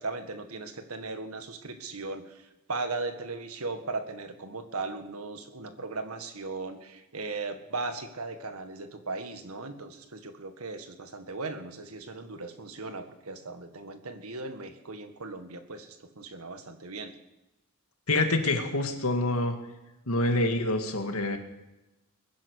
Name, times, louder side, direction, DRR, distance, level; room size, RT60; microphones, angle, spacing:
voice 1, 0.0-17.1, right 3 dB, 85° right, 8 dB, 1.8 m, -37 dB
voice 2, 18.1-19.6 20.1-21.4, left 2 dB, 80° left, 6 dB, 2.1 m, -26 dB
21.5 x 10.5 x 6.5 m, 0.98 s
head